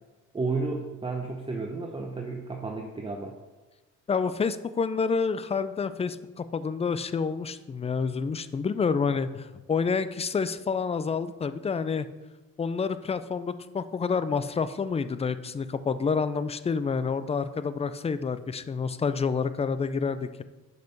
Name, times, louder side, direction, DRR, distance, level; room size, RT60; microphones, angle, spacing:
voice 1, 0.3-3.4, right 3 dB, 20° right, 2 dB, 0.7 m, -32 dB
voice 2, 4.1-12.1 12.6-20.4, left 5 dB, 20° left, 13 dB, 0.4 m, -28 dB
6.0 x 5.4 x 5.3 m, 1.2 s
cardioid pair, 90°, 30 cm